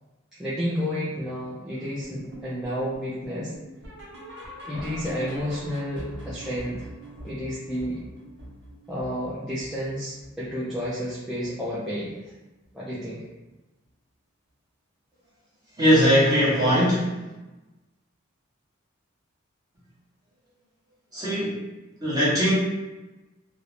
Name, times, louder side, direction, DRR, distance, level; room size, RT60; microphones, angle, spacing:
voice 1, 0.4-3.5 4.6-6.9 7.2-8.0 8.9-12.1 12.7-13.2, equal, ahead, -10 dB, 0.3 m, -31 dB
sound 1, 2.0-11.1 11.4-11.7 12.0-12.1 12.6-12.7 13.2-13.3, equal, 60° right, 0.7 m, -43 dB
voice 2, 15.8-17.2 21.1-21.6 22.0-22.5, equal, 20° right, -8 dB, 0.8 m, -20 dB
2.5 x 2.0 x 2.9 m, 1.1 s
head